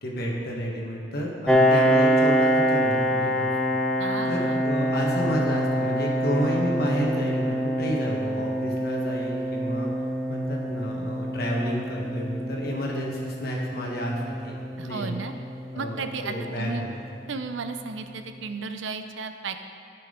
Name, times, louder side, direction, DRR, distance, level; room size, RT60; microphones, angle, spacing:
voice 1, 0.0-3.5 4.2-9.9 10.3-14.5 14.8-15.2 15.7-17.0, equal, 50° left, -2 dB, 1.3 m, -30 dB
Piano, 1.5-16.8, equal, 5° left, 0.5 m, -26 dB
voice 2, 4.0-4.7 14.8-15.3 15.7-16.8 17.3-19.6, right 4 dB, 80° right, 8 dB, 0.5 m, -34 dB
12.0 x 6.0 x 3.7 m, 2.5 s
head